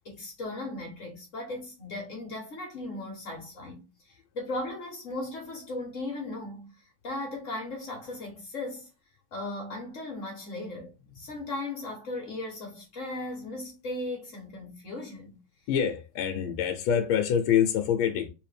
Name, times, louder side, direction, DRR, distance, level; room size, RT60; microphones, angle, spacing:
voice 1, 0.0-6.7 7.0-8.9 9.3-15.4, left 2 dB, 45° left, 1.1 m, -37 dB
voice 2, 15.7-18.3, left 8 dB, 75° left, 1.4 m, -25 dB
3.4 x 3.3 x 3.3 m
omnidirectional pair, 2.4 m